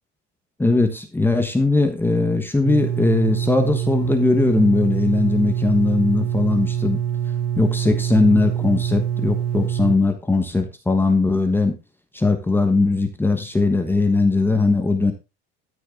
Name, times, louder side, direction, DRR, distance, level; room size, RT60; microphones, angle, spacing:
voice 1, 0.6-7.0 7.6-11.7 12.1-15.1, left 3 dB, 5° left, 6 dB, 1.4 m, -19 dB
sound 1, 2.6-10.0, right 9 dB, 80° right, 1.6 m, -24 dB
13.5 x 6.4 x 3.9 m, 0.27 s
cardioid pair, 140°, 30 cm